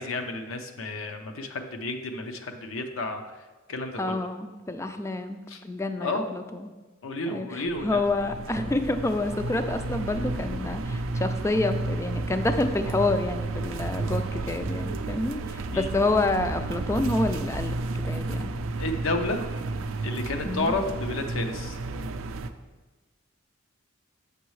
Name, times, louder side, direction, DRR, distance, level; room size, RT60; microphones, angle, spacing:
voice 1, 0.0-3.2 3.7-4.0 5.5-5.6 6.0-6.2 7.0-8.0 15.7-15.9 18.8-19.4 20.0-21.8, left 2 dB, 70° left, 5 dB, 0.6 m, -31 dB
voice 2, 4.0-6.7 7.3-17.8 18.0-18.5 20.4-20.7, left 2 dB, 15° left, 8 dB, 0.3 m, -28 dB
sound 1, 7.7-19.1, equal, 45° right, 0.8 m, -44 dB
sound 2, 7.7-22.5, right 3 dB, 70° right, 0.4 m, -32 dB
6.7 x 6.2 x 3.1 m, 1.3 s
head